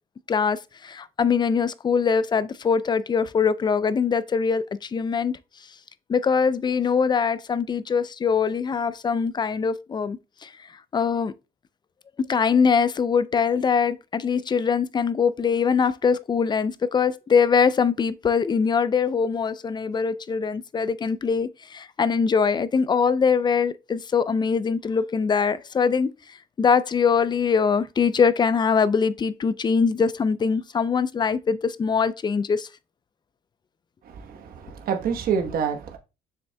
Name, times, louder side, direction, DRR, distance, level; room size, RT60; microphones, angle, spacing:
voice 1, 0.3-5.4 6.1-10.5 10.9-11.3 12.3-26.1 26.6-32.7, left 6 dB, 25° left, 0.4 m, -22 dB
voice 2, 34.1-36.0, right 7 dB, 60° right, 1.1 m, -27 dB
7.0 x 6.3 x 2.2 m
cardioid pair, 110°, 17 cm